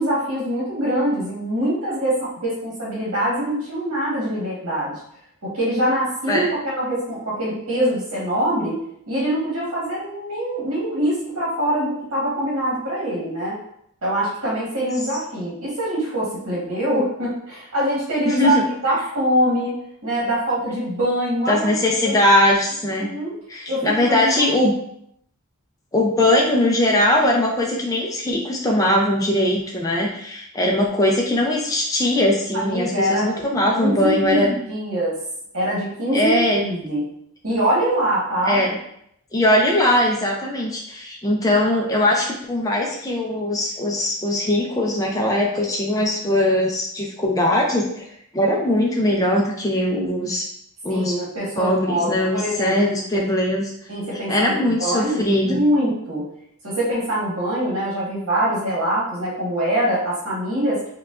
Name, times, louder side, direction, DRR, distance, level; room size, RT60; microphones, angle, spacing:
voice 1, 0.0-4.9 5.4-8.8 9.1-13.6 14.0-18.6 18.8-19.7 20.0-21.8 22.0-22.2 23.0-23.3 23.7-24.5 32.5-33.2 33.7-35.2 35.5-37.0 37.4-38.6 50.9-52.8 53.9-56.3 56.6-60.9, right 1 dB, 60° right, -6 dB, 1.2 m, -24 dB
voice 2, 18.3-18.6 21.5-23.1 23.5-24.8 25.9-34.5 36.1-36.6 38.4-38.8 39.3-48.0 48.3-50.4 50.8-51.1 51.6-53.7 54.3-55.6, left 1 dB, 15° left, -1 dB, 0.4 m, -20 dB
4.7 x 2.2 x 2.4 m, 0.72 s
head